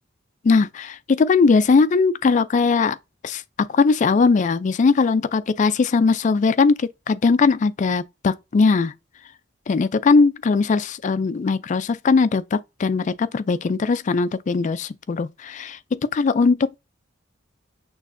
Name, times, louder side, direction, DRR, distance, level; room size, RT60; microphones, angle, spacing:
voice 1, 0.4-3.0 3.2-3.4 3.7-8.9 9.7-16.8, left 4 dB, 40° left, 0.3 m, -19 dB
6.2 x 2.6 x 2.5 m
head